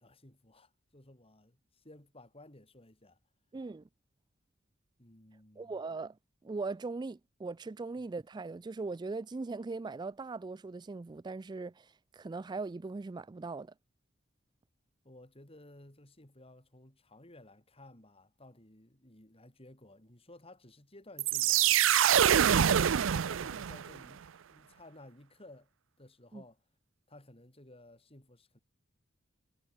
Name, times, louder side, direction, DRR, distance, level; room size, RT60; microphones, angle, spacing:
voice 1, 0.0-3.2 5.0-5.8 8.0-8.1 15.0-21.7 22.1-25.7 26.0-26.6 27.1-28.6, left 1 dB, 30° left, 4.4 m, -56 dB
voice 2, 3.5-3.9 5.6-6.2 6.4-13.7 26.3-26.4, right 3 dB, 20° right, 0.3 m, -40 dB
sound 1, 21.2-24.0, right 9 dB, 75° right, 0.5 m, -25 dB
head